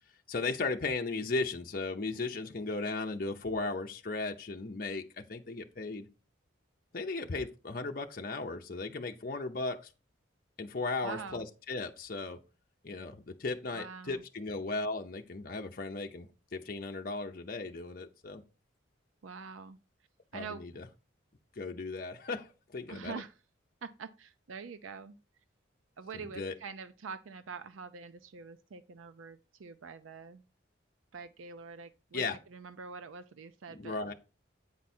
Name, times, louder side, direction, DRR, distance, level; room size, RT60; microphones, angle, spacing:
voice 1, 0.3-5.0 5.3-6.1 6.9-9.9 10.6-12.4 12.8-16.3 16.5-18.4 20.3-20.8 21.6-23.2 26.1-26.6 32.1-32.4 33.7-34.1, left 3 dB, 45° left, 0.7 m, -36 dB
voice 2, 11.0-11.5 13.7-14.2 19.2-19.8 20.3-20.8 22.9-23.3 23.8-25.1 26.0-30.4 31.1-34.1, right 5 dB, 85° right, 0.5 m, -45 dB
8.8 x 4.6 x 4.3 m
head